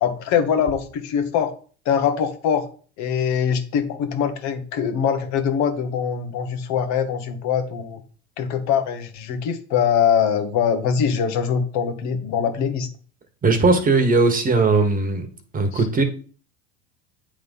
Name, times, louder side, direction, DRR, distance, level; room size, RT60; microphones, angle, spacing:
voice 1, 0.0-1.5 1.8-2.7 3.0-8.0 8.4-12.9 15.7-15.9, left 7 dB, 60° left, 7 dB, 1.5 m, -23 dB
voice 2, 13.4-15.3 15.5-16.0, right 3 dB, 25° right, 7 dB, 1.4 m, -18 dB
8.3 x 3.9 x 5.4 m, 0.41 s
supercardioid pair, 110°, 32 cm